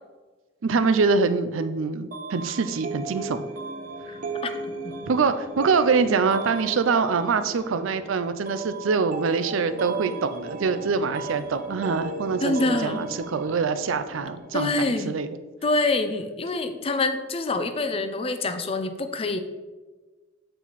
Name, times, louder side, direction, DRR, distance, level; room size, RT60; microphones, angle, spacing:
voice 1, 0.6-3.5 5.1-15.3, right 4 dB, 85° right, 11 dB, 0.5 m, -24 dB
sound 1, 2.1-14.7, right 3 dB, 45° right, 0.7 m, -35 dB
voice 2, 4.1-4.5 12.4-13.0 14.5-15.2 15.6-19.4, left 2 dB, 30° left, 9 dB, 0.5 m, -26 dB
7.6 x 4.5 x 4.0 m, 1.3 s
head